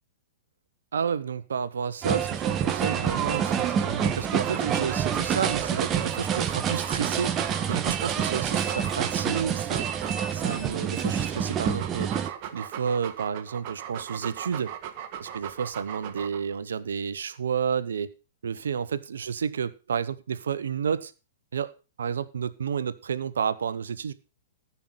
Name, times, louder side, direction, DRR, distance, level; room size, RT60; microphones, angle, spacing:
voice 1, 0.9-14.7 15.2-18.1 18.4-21.1 21.5-21.7 22.0-24.1, right 7 dB, 70° right, 1.0 m, -31 dB
sound 1, 2.0-12.3, right 8 dB, 25° right, 1.2 m, -27 dB
Dog, 2.4-10.6 11.2-16.6, right 10 dB, 40° right, 1.7 m, -39 dB
14.5 x 5.7 x 6.2 m
figure-of-eight pair, 110°, 0 cm